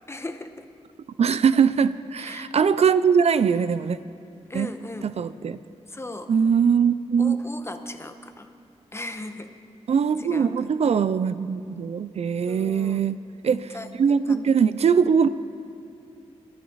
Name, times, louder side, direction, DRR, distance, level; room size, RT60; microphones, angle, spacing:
voice 1, 0.1-0.7 2.2-2.5 4.5-5.1 5.9-6.3 7.2-8.5 8.9-9.5 10.2-10.5 12.5-13.0 13.7-14.4, left 2 dB, 20° left, 7 dB, 1.2 m, -37 dB
voice 2, 1.2-4.0 4.5-4.7 5.0-5.6 6.3-7.4 9.9-13.7 14.0-15.3, right 6 dB, 65° right, 14 dB, 0.5 m, -21 dB
22.0 x 12.5 x 4.0 m, 2.7 s
cardioid pair, 65°, 12 cm